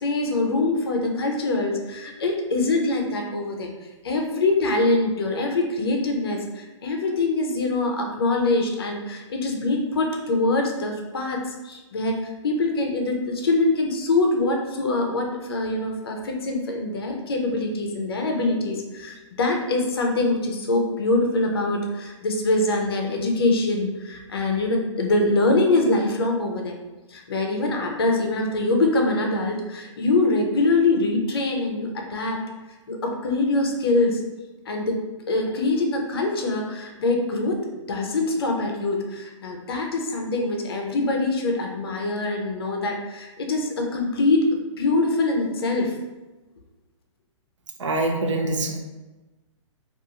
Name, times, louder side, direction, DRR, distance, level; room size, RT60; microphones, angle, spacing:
voice 1, 0.0-3.7 4.0-26.8 27.1-32.4 32.9-34.2 34.7-35.0 35.3-44.5 44.8-45.9, left 2 dB, 50° left, 2 dB, 0.5 m, -24 dB
voice 2, 47.8-48.8, right 2 dB, 65° right, 1 dB, 0.6 m, -24 dB
2.4 x 2.3 x 2.8 m, 1.2 s
hypercardioid pair, 175°, 16 cm